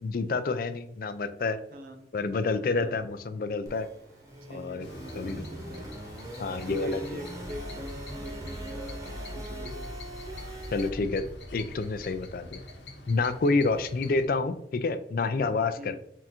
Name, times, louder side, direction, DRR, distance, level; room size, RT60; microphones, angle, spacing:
voice 1, 0.0-1.6 2.1-3.9 4.5-4.9 5.2-5.4 6.4-7.0 10.7-11.2 11.5-12.6 13.1-16.0, left 3 dB, 55° left, 10 dB, 0.4 m, -28 dB
voice 2, 1.7-2.1 2.8-3.1 4.5-5.9 6.4-6.5 6.8-9.9 13.5-13.8 15.8-16.0, equal, 55° right, 6 dB, 0.6 m, -44 dB
sound 1, 3.7-10.9, right 2 dB, 20° right, 0.9 m, -42 dB
sound 2, 4.8-14.3, left 1 dB, 75° left, 0.9 m, -46 dB
sound 3, 7.2-13.3, left 1 dB, 40° left, 1.3 m, -45 dB
3.6 x 2.5 x 4.2 m, 0.75 s
head